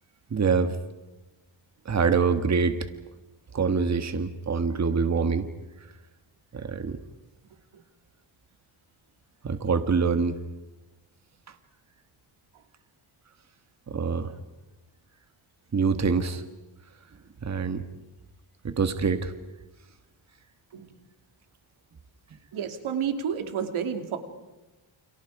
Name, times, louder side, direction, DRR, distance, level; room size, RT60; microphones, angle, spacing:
voice 1, 0.3-0.8 1.8-2.9 3.5-5.5 5.8-5.9 6.5-7.0 9.4-10.4 11.5-11.6 13.9-14.4 15.7-16.4 17.4-17.8 18.6-19.3, right 5 dB, 35° right, 8 dB, 1.6 m, -25 dB
voice 2, 22.5-24.2, right 7 dB, 85° right, 6 dB, 3.1 m, -30 dB
29.5 x 29.0 x 4.9 m, 1.1 s
cardioid pair, 120°, 48 cm